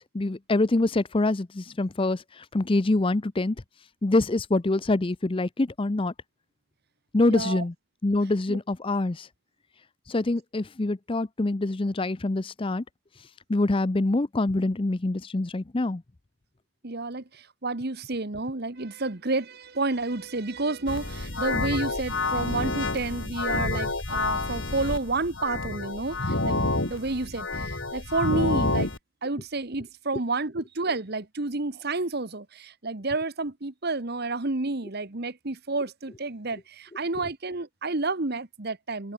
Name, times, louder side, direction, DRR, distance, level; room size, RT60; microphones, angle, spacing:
voice 1, 0.0-3.6 4.0-6.1 7.1-7.7 8.0-9.3 10.1-12.8 13.5-16.0, left 2 dB, 25° left, 0.5 m, -25 dB
voice 2, 7.3-7.6 8.5-8.6 16.8-28.9 29.2-39.1, right 3 dB, 50° right, 1.3 m, -30 dB
sound 1, 20.9-29.0, left 2 dB, 60° left, 3.5 m, -29 dB
open air
head